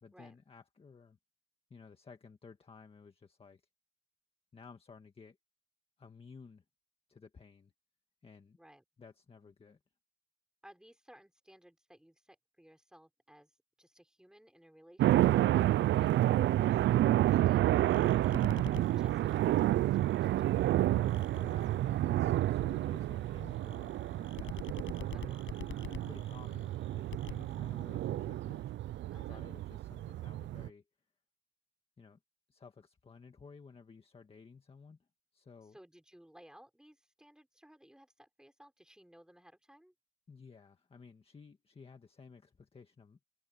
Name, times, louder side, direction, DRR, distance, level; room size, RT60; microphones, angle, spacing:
voice 1, 0.0-1.2 1.7-3.6 4.5-5.4 6.0-6.6 7.1-7.7 8.2-8.6 9.0-9.8 20.9-30.8 32.0-32.2 32.5-35.8 40.3-43.2, left 5 dB, 20° left, 1.7 m, -55 dB
voice 2, 8.5-8.8 10.6-16.8 17.3-18.3 18.9-20.6 25.1-25.4 29.1-29.5 35.7-39.9, equal, ahead, 5.0 m, -59 dB
sound 1, 15.0-30.7, right 14 dB, 40° right, 0.4 m, -30 dB
sound 2, 17.4-28.6, left 9 dB, 40° left, 6.2 m, -50 dB
cardioid pair, 145°, 29 cm